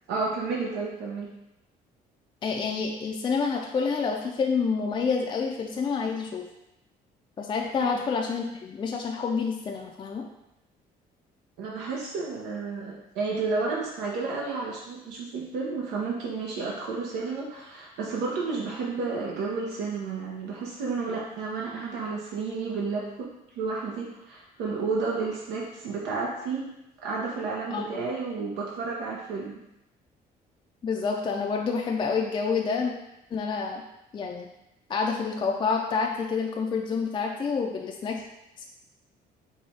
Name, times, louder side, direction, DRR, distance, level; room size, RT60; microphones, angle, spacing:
voice 1, 0.1-1.3 7.8-7.9 11.6-23.3 23.6-26.7 27.0-29.6, right 4 dB, 90° right, -3 dB, 0.7 m, -31 dB
voice 2, 2.4-6.4 7.4-10.3 27.7-28.1 30.8-32.9 33.3-33.8 34.1-34.5 34.9-38.2, left 5 dB, 30° left, 1 dB, 0.4 m, -28 dB
4.7 x 2.3 x 4.1 m, 0.88 s
cardioid pair, 110°, 17 cm